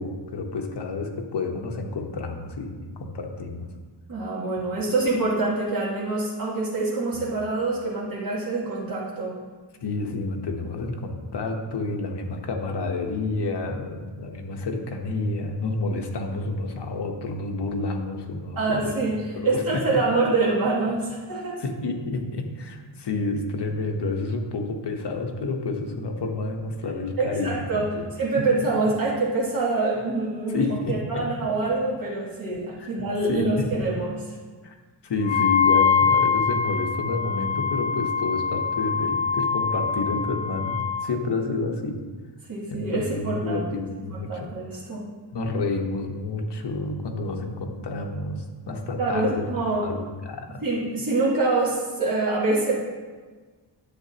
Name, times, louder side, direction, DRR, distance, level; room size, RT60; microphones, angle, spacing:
voice 1, 0.0-3.7 7.1-7.2 9.8-19.8 21.6-28.1 28.4-28.5 30.5-31.3 32.5-32.9 33.3-33.7 34.6-34.7 35.0-42.0 42.7-44.5 45.3-49.5 49.8-50.6, left 3 dB, 65° left, 2 dB, 1.1 m, -29 dB
voice 2, 4.1-9.4 18.6-21.6 27.2-27.9 28.2-34.2 42.5-43.7 44.1-45.0 49.0-49.9 50.6-52.7, right 3 dB, 50° right, -8 dB, 2.6 m, -25 dB
Wind instrument woodwind instrument, 35.2-41.1, left 6 dB, 80° left, 0.6 m, -24 dB
10.0 x 7.5 x 2.8 m, 1.4 s
wide cardioid pair, 125°, 45 cm